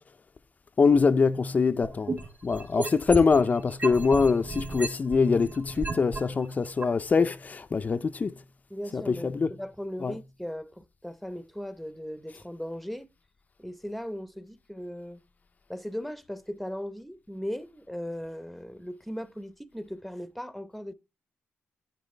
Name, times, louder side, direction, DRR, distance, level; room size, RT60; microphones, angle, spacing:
voice 1, 0.8-2.2 2.4-8.3 8.9-9.5 10.0-10.1, left 4 dB, 35° left, 0.5 m, -24 dB
sound 1, 1.8-3.4 3.8-6.2 6.8-6.9, right 3 dB, 35° right, 2.7 m, -33 dB
voice 2, 8.7-13.1 13.6-15.2 15.7-20.9, equal, ahead, 0.9 m, -38 dB
10.0 x 10.0 x 3.3 m
cardioid pair, 95°, 5 cm